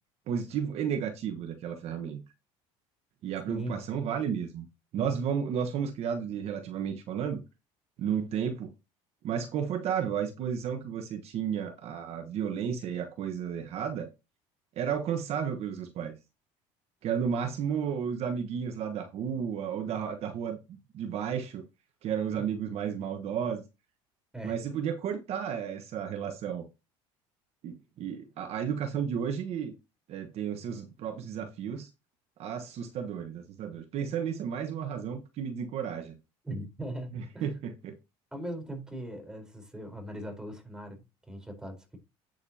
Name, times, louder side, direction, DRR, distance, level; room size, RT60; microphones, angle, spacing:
voice 1, 0.3-2.2 3.2-4.7 4.9-7.4 8.0-8.7 9.2-14.1 14.8-16.1 17.0-21.6 22.0-23.6 24.4-26.7 27.6-29.7 30.1-31.9 32.4-36.2 37.1-38.0, right 8 dB, 55° right, 1.3 m, -33 dB
voice 2, 36.4-37.5 38.3-42.0, right 1 dB, 5° right, 4.1 m, -39 dB
8.9 x 7.9 x 2.8 m
supercardioid pair, 110°, 12 cm